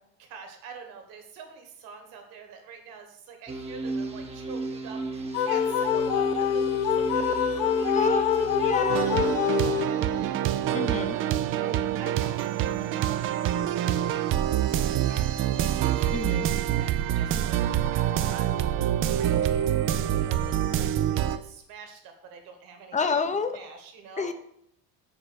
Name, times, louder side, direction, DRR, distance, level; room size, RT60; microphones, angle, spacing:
voice 1, 0.2-9.2 9.5-12.5 12.9-16.1 16.5-18.7 19.1-23.0 23.5-24.3, right 5 dB, 50° right, 4 dB, 1.8 m, -44 dB
sound 1, 3.5-9.4, right 2 dB, 15° right, 1.0 m, -33 dB
sound 2, 5.3-10.2, left 9 dB, 60° left, 0.6 m, -26 dB
voice 2, 7.9-9.1 10.7-11.2 16.1-16.5 22.9-23.6 24.2-24.3, left 5 dB, 15° left, 9 dB, 0.7 m, -27 dB
sound 3, 8.9-21.4, right 11 dB, 30° right, 0.4 m, -26 dB
7.8 x 3.9 x 6.1 m, 0.73 s
figure-of-eight pair, 65°, 45 cm